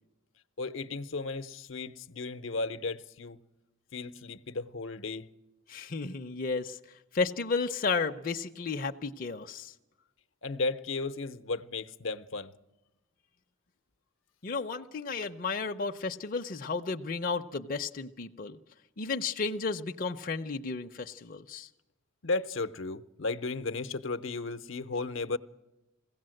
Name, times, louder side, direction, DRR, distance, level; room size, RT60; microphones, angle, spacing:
voice 1, 0.6-3.4 3.9-5.3 10.4-12.5 22.2-25.4, left 3 dB, 75° left, 0.8 m, -34 dB
voice 2, 5.7-9.7 14.4-18.6 19.0-21.7, left 4 dB, 45° left, 0.6 m, -33 dB
22.0 x 16.5 x 7.7 m
head